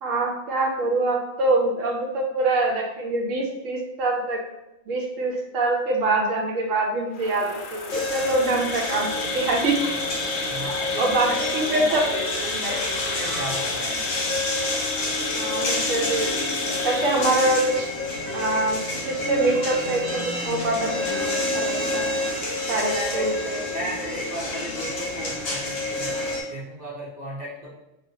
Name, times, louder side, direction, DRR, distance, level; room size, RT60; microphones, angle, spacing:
voice 1, 0.0-4.4 4.9-9.9 11.0-12.0 15.3-16.3 16.8-17.9 18.3-21.2 21.5-22.1 22.7-23.6, right 2 dB, 80° right, 1 dB, 1.1 m, -24 dB
Insect, 7.1-17.9, left 4 dB, 60° left, 0.5 m, -32 dB
sound 1, 7.9-26.4, left 1 dB, 80° left, 1.3 m, -28 dB
voice 2, 10.5-14.1 22.6-27.7, equal, 40° right, -6 dB, 0.7 m, -35 dB
4.2 x 2.3 x 2.6 m, 0.91 s
omnidirectional pair, 1.4 m